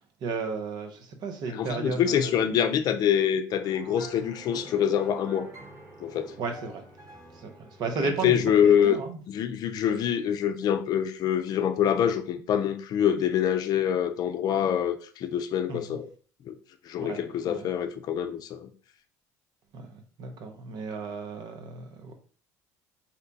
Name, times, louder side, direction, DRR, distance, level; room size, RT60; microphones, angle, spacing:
voice 1, 0.2-2.3 6.4-6.8 7.3-8.4 8.6-9.2 15.7-16.0 17.0-17.7 19.7-22.1, right 4 dB, 55° right, 0.8 m, -34 dB
voice 2, 1.5-5.5 6.0-6.3 8.0-9.0 9.3-16.1 16.5-16.6 16.9-18.7, left 9 dB, 50° left, 0.4 m, -25 dB
sound 1, 3.6-8.0, right 1 dB, 40° right, 1.5 m, -47 dB
2.8 x 2.2 x 3.9 m
hypercardioid pair, 70°, 8 cm